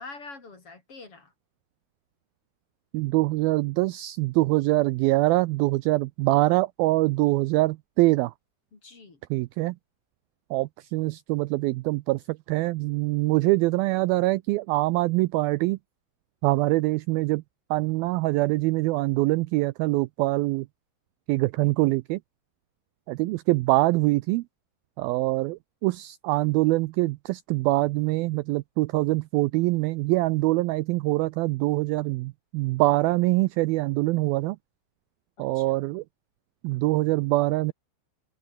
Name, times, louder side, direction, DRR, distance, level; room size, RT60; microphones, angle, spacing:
voice 1, 0.0-1.3 8.7-9.2 35.4-35.8, left 3 dB, 35° left, 4.7 m, -45 dB
voice 2, 2.9-8.3 9.3-9.7 10.5-12.2 12.5-15.8 16.4-17.4 17.7-20.7 21.3-22.2 23.1-24.4 25.0-34.6 35.4-36.0 36.6-37.7, right 20 dB, 85° right, 2.1 m, -24 dB
open air
omnidirectional pair, 4.8 m